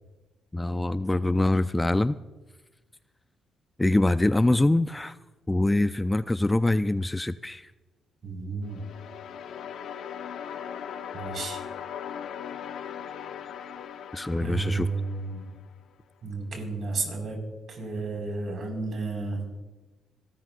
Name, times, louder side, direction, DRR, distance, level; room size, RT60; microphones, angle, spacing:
voice 1, 0.5-2.2 3.8-5.2 5.5-7.7 14.1-14.9, left 2 dB, 15° left, 13 dB, 0.3 m, -24 dB
voice 2, 8.2-8.8 10.4-10.5 11.1-11.6 14.4-15.5 16.2-17.4 17.7-19.4, right 3 dB, 55° right, 0 dB, 4.9 m, -32 dB
sound 1, 8.6-15.7, left 8 dB, 75° left, 1.0 m, -39 dB
26.5 x 13.0 x 2.5 m, 1.2 s
cardioid pair, 90°, 0 cm